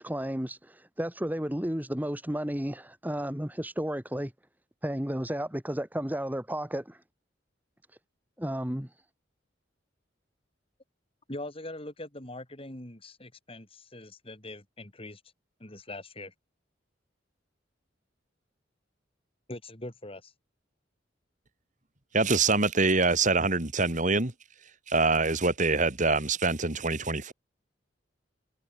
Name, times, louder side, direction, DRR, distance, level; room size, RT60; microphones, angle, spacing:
voice 1, 0.0-4.3 4.8-7.0 8.4-8.9, equal, 10° right, 1.8 m, -32 dB
voice 2, 11.3-15.2 15.6-16.3 19.5-20.3, left 1 dB, 30° left, 4.2 m, -42 dB
voice 3, 22.1-24.3 24.9-27.3, right 3 dB, 40° right, 2.8 m, -25 dB
head